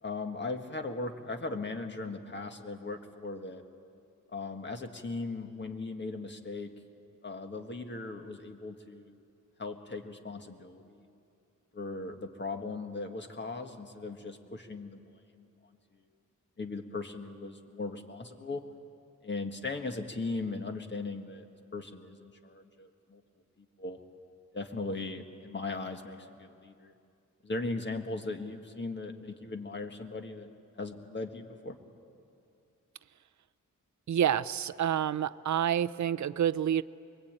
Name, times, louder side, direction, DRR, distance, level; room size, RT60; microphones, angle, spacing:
voice 1, 0.0-3.6 4.3-6.7 7.2-9.3 9.6-11.1 11.7-15.8 16.6-18.6 19.2-21.5 21.7-23.2 23.6-24.0 24.5-26.9 27.4-30.5 30.7-31.8, left 3 dB, 35° left, 5 dB, 1.7 m, -38 dB
voice 2, 34.1-36.8, right 9 dB, 65° right, 14 dB, 0.6 m, -28 dB
24.0 x 22.5 x 8.9 m, 2.5 s
wide cardioid pair, 140°, 31 cm